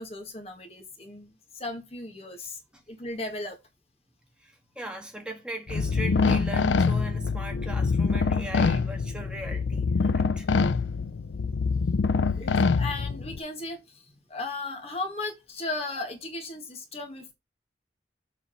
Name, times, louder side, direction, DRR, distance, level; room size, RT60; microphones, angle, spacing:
voice 1, 0.0-2.6 2.9-3.6 12.3-17.3, left 2 dB, 35° left, 1.9 m, -36 dB
voice 2, 4.4-10.5, right 1 dB, 5° right, 1.5 m, -39 dB
sound 1, 5.7-13.4, left 4 dB, 85° left, 0.5 m, -25 dB
7.4 x 4.0 x 6.3 m
head